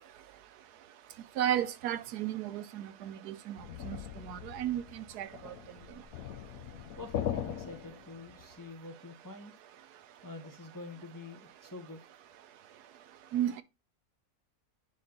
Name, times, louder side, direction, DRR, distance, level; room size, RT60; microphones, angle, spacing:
voice 1, 1.4-3.6 3.8-5.5 13.3-13.6, right 11 dB, 80° right, 1.2 m, -34 dB
sound 1, 3.6-8.5, left 10 dB, 70° left, 1.2 m, -40 dB
voice 2, 7.0-9.5 10.2-12.0, left 2 dB, 15° left, 0.8 m, -46 dB
9.6 x 4.1 x 3.7 m
omnidirectional pair, 1.7 m